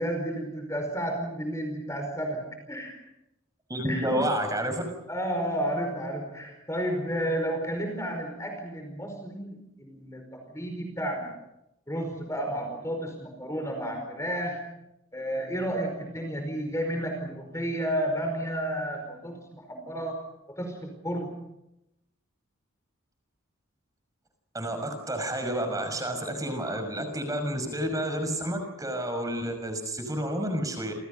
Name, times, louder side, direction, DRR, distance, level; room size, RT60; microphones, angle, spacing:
voice 1, 0.0-3.0 3.8-4.2 5.1-11.3 11.9-14.6 15.1-20.2 20.6-21.3, equal, 15° left, 5 dB, 4.9 m, -32 dB
voice 2, 3.7-4.8 24.5-30.9, right 1 dB, 15° right, 6 dB, 5.9 m, -30 dB
29.5 x 28.0 x 5.5 m, 0.86 s
head